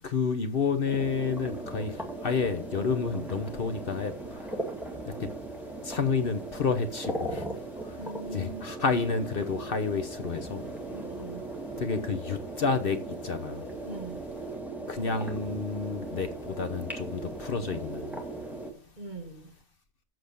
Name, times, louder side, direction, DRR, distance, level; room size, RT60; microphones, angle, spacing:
voice 1, 0.0-5.3 5.8-8.1 8.3-11.0 11.8-13.7 14.9-18.4, left 5 dB, 55° left, 1.0 m, -30 dB
sound 1, 0.9-18.7, right 2 dB, ahead, 1.9 m, -38 dB
voice 2, 8.0-8.7 10.9-11.4 13.8-14.2 19.0-19.5, right 2 dB, 40° right, 2.0 m, -41 dB
7.8 x 7.1 x 6.7 m
omnidirectional pair, 1.2 m